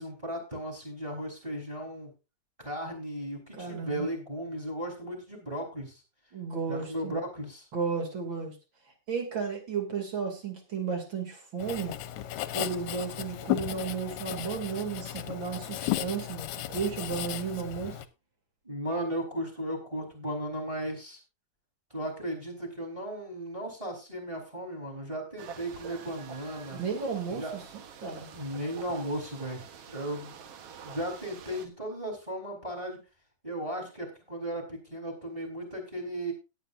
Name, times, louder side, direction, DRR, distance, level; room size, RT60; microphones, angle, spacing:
voice 1, 0.0-2.1 2.6-6.0 6.7-7.6 18.6-21.2 21.9-26.8 27.3-27.6 28.3-30.3 30.8-33.0 33.4-36.3, right 1 dB, 10° right, 4 dB, 4.0 m, -36 dB
voice 2, 3.6-4.1 6.3-7.2 7.7-8.5 9.1-11.9 12.5-18.0 26.7-28.3, right 5 dB, 40° right, 3 dB, 3.2 m, -34 dB
Writing, 11.6-18.1, left 13 dB, 75° left, 2.0 m, -35 dB
sound 1, 25.4-31.7, right 7 dB, 60° right, 1.9 m, -47 dB
17.5 x 9.8 x 2.6 m, 0.28 s
omnidirectional pair, 3.6 m